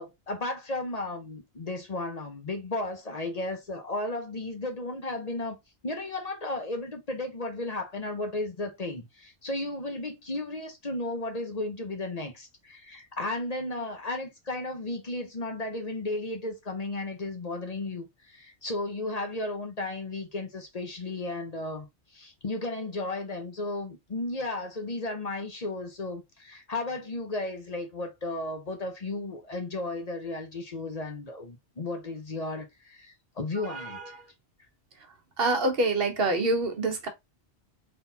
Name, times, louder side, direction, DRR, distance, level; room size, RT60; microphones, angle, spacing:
voice 1, 0.0-5.6 5.8-21.9 22.1-34.1, left 2 dB, 40° left, 0.9 m, -34 dB
voice 2, 35.4-37.1, right 2 dB, 60° right, 1.2 m, -26 dB
3.9 x 3.4 x 2.8 m
omnidirectional pair, 1.2 m